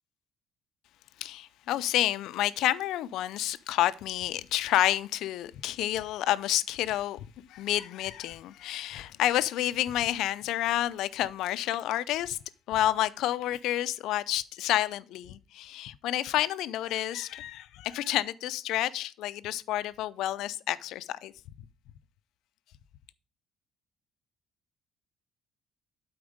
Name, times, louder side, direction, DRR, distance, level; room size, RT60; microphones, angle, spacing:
voice 1, 1.2-12.4 12.7-21.3, left 13 dB, 70° left, 0.4 m, -29 dB
8.6 x 4.4 x 5.1 m
cardioid pair, 165°, 0 cm